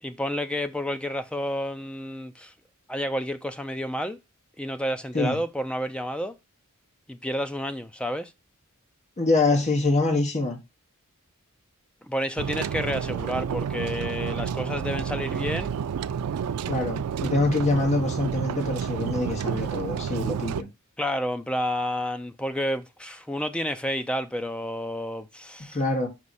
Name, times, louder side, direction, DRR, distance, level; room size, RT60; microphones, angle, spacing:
voice 1, 0.0-2.5 2.9-4.2 4.6-6.4 7.1-8.3 12.1-15.7 21.0-25.8, equal, 5° left, 0.5 m, -30 dB
voice 2, 9.2-10.6 16.7-20.7 25.7-26.1, left 2 dB, 30° left, 1.2 m, -25 dB
sound 1, 12.4-20.6, right 7 dB, 80° right, 0.4 m, -30 dB
5.4 x 4.8 x 4.1 m
head